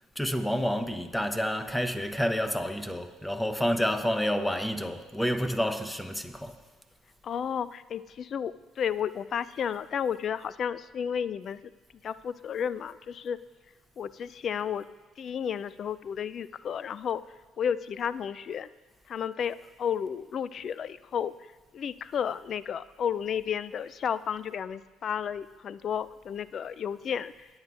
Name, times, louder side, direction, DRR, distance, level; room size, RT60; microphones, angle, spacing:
voice 1, 0.2-6.6, equal, 5° left, 1.0 m, -29 dB
voice 2, 7.2-11.6 12.0-13.4 14.0-14.9 15.2-17.2 17.6-18.7 19.1-21.3 21.7-27.5, left 8 dB, 50° left, 0.4 m, -32 dB
20.0 x 8.0 x 2.5 m
hypercardioid pair, 60°, 0 cm